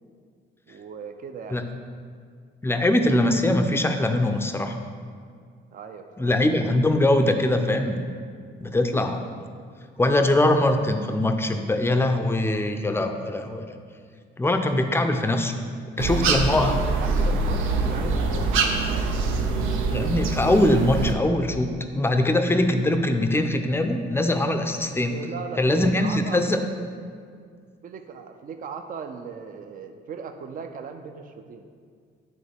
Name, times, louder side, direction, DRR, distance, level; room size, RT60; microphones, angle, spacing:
voice 1, 0.7-1.6 5.7-6.3 8.6-8.8 16.3-18.6 25.1-26.4 27.8-31.7, right 6 dB, 45° right, 6 dB, 0.5 m, -38 dB
voice 2, 2.6-4.8 6.2-8.0 8.6-9.2 10.0-13.7 14.4-15.5 16.0-16.8 19.9-25.1 25.6-26.6, left 1 dB, 10° left, 6 dB, 0.5 m, -22 dB
sound 1, 16.0-21.1, right 3 dB, 90° right, 0.6 m, -24 dB
9.5 x 3.6 x 3.5 m, 2.1 s
cardioid pair, 90°, 20 cm